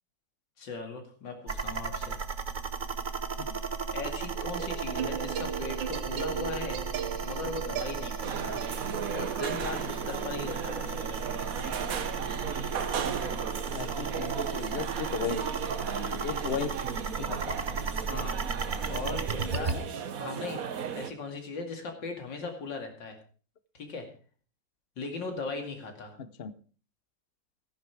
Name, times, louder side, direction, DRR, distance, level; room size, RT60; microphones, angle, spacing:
voice 1, 0.6-2.2 3.9-6.8 7.2-8.6 9.1-11.3 18.0-18.4 18.9-19.7 20.2-23.2 23.7-24.1 25.0-26.2, left 3 dB, 80° left, 4 dB, 3.1 m, -38 dB
sound 1, 1.5-19.8, right 5 dB, 35° right, 0.8 m, -35 dB
sound 2, 4.4-11.7, right 9 dB, 90° right, 1.7 m, -39 dB
sound 3, 8.2-21.1, right 7 dB, 55° right, 1.4 m, -36 dB
voice 2, 13.7-15.5 16.1-16.7 17.2-17.6 19.7-19.9 26.2-26.5, left 7 dB, 50° left, 13 dB, 0.7 m, -36 dB
14.0 x 10.5 x 4.7 m, 0.40 s
omnidirectional pair, 1.9 m